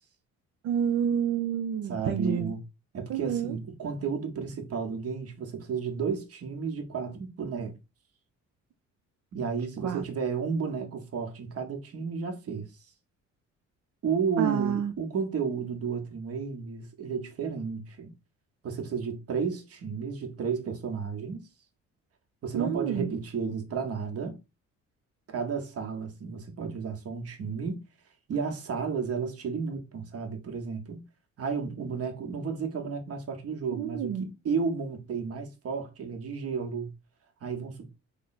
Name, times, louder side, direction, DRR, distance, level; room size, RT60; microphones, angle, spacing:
voice 1, 0.6-2.5 3.1-3.6 9.8-10.0 14.4-14.9 22.5-23.1 33.8-34.3, right 8 dB, 65° right, 0.5 m, -29 dB
voice 2, 1.9-2.6 2.9-7.8 9.3-12.7 14.0-18.1 18.6-21.5 22.4-24.4 25.3-27.8 28.3-31.0 31.4-36.9 37.4-37.9, right 5 dB, 50° right, 0.9 m, -32 dB
3.3 x 2.0 x 3.9 m
cardioid pair, 90°, 30 cm